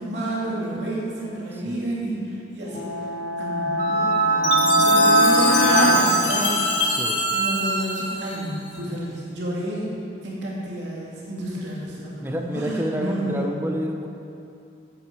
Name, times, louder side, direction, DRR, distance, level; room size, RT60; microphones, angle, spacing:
voice 1, 0.0-2.9 3.4-6.7 7.3-9.9 10.2-13.6, right 1 dB, 75° right, -5 dB, 2.7 m, -30 dB
voice 2, 1.5-1.9 4.5-4.6 6.9-7.2 12.2-14.1, equal, 10° right, 3 dB, 0.8 m, -29 dB
sound 1, 2.7-7.0, left 1 dB, 50° left, 2.0 m, -22 dB
Wind instrument woodwind instrument, 3.8-8.1, right 5 dB, 50° right, 1.0 m, -24 dB
Chime, 4.4-8.7, left 4 dB, 75° left, 1.4 m, -26 dB
9.3 x 7.5 x 6.7 m, 2.6 s
head